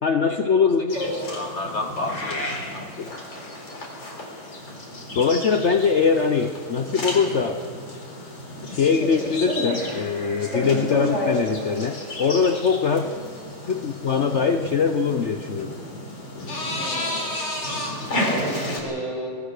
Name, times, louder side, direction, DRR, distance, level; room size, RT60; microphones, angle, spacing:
voice 1, 0.0-3.1 5.1-7.7 8.7-13.1 13.7-15.7, left 5 dB, 80° left, 7 dB, 0.6 m, -23 dB
sound 1, 0.9-18.8, left 1 dB, 60° left, 4.9 m, -31 dB
voice 2, 12.9-13.2 16.8-17.3 18.2-19.4, right 1 dB, 70° right, -3 dB, 6.8 m, -33 dB
24.5 x 19.0 x 6.6 m, 2.2 s
omnidirectional pair, 2.3 m